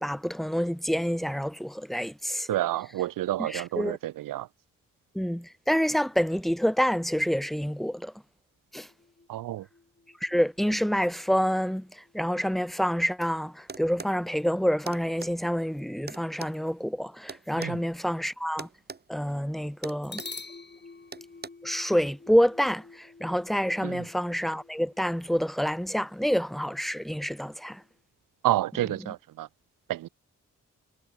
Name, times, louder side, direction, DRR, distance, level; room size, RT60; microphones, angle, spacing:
voice 1, 0.0-2.5 3.4-4.0 5.1-8.1 8.7-8.9 10.2-18.7 19.1-20.2 21.6-27.8, equal, ahead, 1.4 m, -27 dB
voice 2, 2.5-4.5 9.3-9.7 17.6-17.8 23.8-24.1 28.4-29.5 29.9-30.1, right 14 dB, 90° right, 0.5 m, -29 dB
sound 1, 8.9-12.5 20.0-27.9, left 3 dB, 30° left, 2.6 m, -49 dB
sound 2, 13.7-14.2 14.9-15.3 16.1-17.8 18.6-19.0 19.3-19.5 19.8-20.4 21.1-21.5, right 4 dB, 30° right, 1.2 m, -41 dB
cardioid pair, 65°, 32 cm